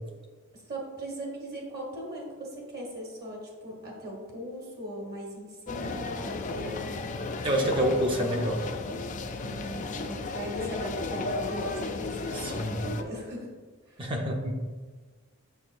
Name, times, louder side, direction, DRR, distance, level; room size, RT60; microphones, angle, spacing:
voice 1, 0.5-7.2 9.4-13.5 13.9-14.1, equal, 45° right, -1 dB, 1.4 m, -39 dB
sound 1, 5.7-13.0, left 3 dB, 35° left, 0.4 m, -34 dB
voice 2, 7.4-8.7 12.3-12.9 14.0-14.5, equal, 25° right, 1 dB, 0.6 m, -27 dB
7.0 x 6.4 x 2.5 m, 1.4 s
head